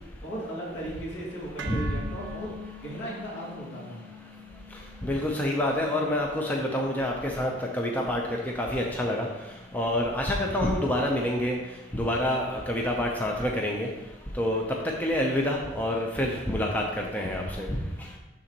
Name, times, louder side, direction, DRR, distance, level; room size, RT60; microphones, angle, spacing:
voice 1, 0.2-2.5 2.8-4.0, right 1 dB, 75° left, -5 dB, 2.3 m, -36 dB
sound 1, 1.6-9.7, left 1 dB, 75° right, 0.5 m, -46 dB
voice 2, 5.0-8.2 8.6-9.3 9.7-11.6 11.9-13.9 14.4-14.6 15.0-17.8, left 1 dB, 10° left, -1 dB, 0.5 m, -27 dB
11.0 x 3.8 x 2.9 m, 1.1 s
head